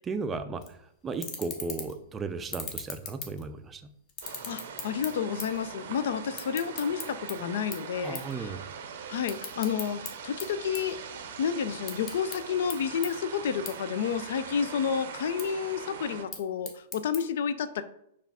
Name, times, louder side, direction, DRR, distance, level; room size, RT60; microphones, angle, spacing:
voice 1, 0.0-0.6 1.0-3.8 7.9-8.6, right 4 dB, 20° right, 9 dB, 0.3 m, -35 dB
sound 1, 0.6-0.7 1.1-2.0 2.4-3.7 4.1-5.7 5.9-7.3 7.7-7.9 8.1-8.3 8.7-10.1 10.4-11.4 11.7-12.4 12.7-12.8 13.0-13.1 13.7-13.8 14.1-14.7 15.1-15.4 16.1-17.2, left 5 dB, 30° left, 0.7 m, -38 dB
sound 2, 4.2-16.2, right 6 dB, 70° right, 0.5 m, -42 dB
voice 2, 4.5-8.5 9.1-11.0 11.4-17.8, left 7 dB, 70° left, 12 dB, 0.3 m, -30 dB
4.5 x 2.4 x 3.5 m, 0.75 s
hypercardioid pair, 135°, 0 cm